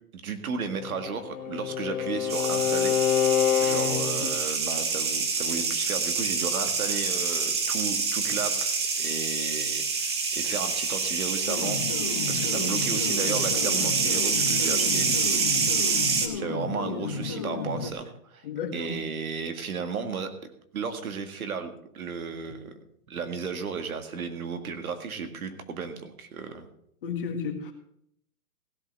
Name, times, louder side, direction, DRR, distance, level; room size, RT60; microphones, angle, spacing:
voice 1, 0.2-3.0 3.6-12.0 12.3-18.5 18.7-20.3 20.7-22.7 23.1-26.7, right 5 dB, 70° right, 8 dB, 1.9 m, -34 dB
Bowed string instrument, 0.7-4.3, left 10 dB, 70° left, 1.5 m, -26 dB
sound 1, 2.3-16.3, right 4 dB, 20° right, 0.6 m, -27 dB
sound 2, 11.5-17.9, left 5 dB, 20° left, 0.5 m, -33 dB
voice 2, 18.4-18.9 27.0-27.7, left 6 dB, 35° left, 4 dB, 1.6 m, -32 dB
16.0 x 5.7 x 6.5 m, 0.71 s
hypercardioid pair, 170°, 44 cm